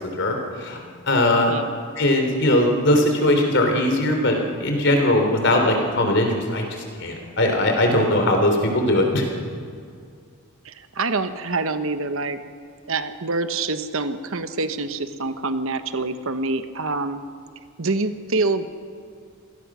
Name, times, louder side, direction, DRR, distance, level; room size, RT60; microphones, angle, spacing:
voice 1, 0.2-0.8 1.1-1.5 2.0-6.6 7.0-9.2, left 1 dB, 55° left, 3 dB, 3.4 m, -20 dB
voice 2, 10.6-12.4 12.9-17.2 17.8-18.7, right 3 dB, 65° right, 10 dB, 1.1 m, -26 dB
26.5 x 18.0 x 6.2 m, 2.2 s
head